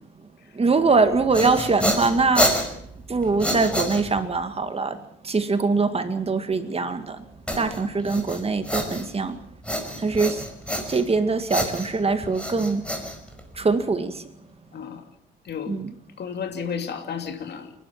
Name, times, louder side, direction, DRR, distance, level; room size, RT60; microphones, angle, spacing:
voice 1, 0.5-2.5 3.1-5.0 5.2-7.2 7.6-9.4 10.0-10.4 10.9-12.8 13.6-14.2 15.7-15.9, right 4 dB, 30° right, 2.1 m, -23 dB
sound 1, 1.0-4.4 7.5-9.3 9.6-11.2 11.5-13.7, equal, 5° left, 5.0 m, -28 dB
voice 2, 14.7-15.0 15.4-15.8 16.2-17.8, left 7 dB, 55° left, 2.7 m, -33 dB
29.5 x 12.0 x 7.4 m
cardioid pair, 90°, 20 cm